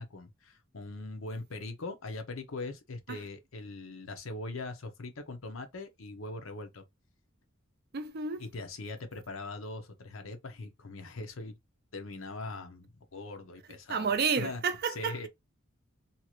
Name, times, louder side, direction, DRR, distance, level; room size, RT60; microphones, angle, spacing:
voice 1, 0.0-6.8 8.4-11.6 11.9-14.1 14.4-14.6 14.9-15.3, left 2 dB, 70° left, 0.8 m, -41 dB
voice 2, 7.9-8.4 13.9-15.3, right 5 dB, 50° right, 0.5 m, -31 dB
2.8 x 2.4 x 3.0 m
head